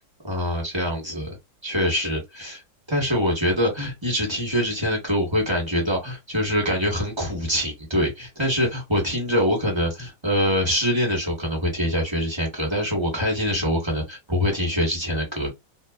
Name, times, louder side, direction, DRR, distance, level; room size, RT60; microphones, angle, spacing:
voice 1, 0.2-1.4 1.6-2.6 2.9-15.5, equal, 15° right, 1.1 m, -24 dB
2.8 x 2.5 x 2.4 m
omnidirectional pair, 2.0 m